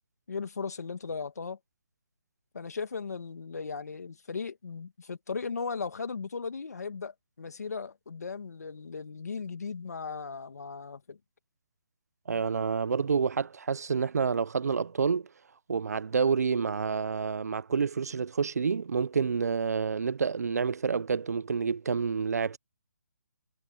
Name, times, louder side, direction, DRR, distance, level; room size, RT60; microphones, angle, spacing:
voice 1, 0.3-1.6 2.5-11.2, left 5 dB, 65° left, 2.2 m, -37 dB
voice 2, 12.3-15.3 15.7-22.6, right 5 dB, 65° right, 0.5 m, -28 dB
hypercardioid pair, 170°, 9 cm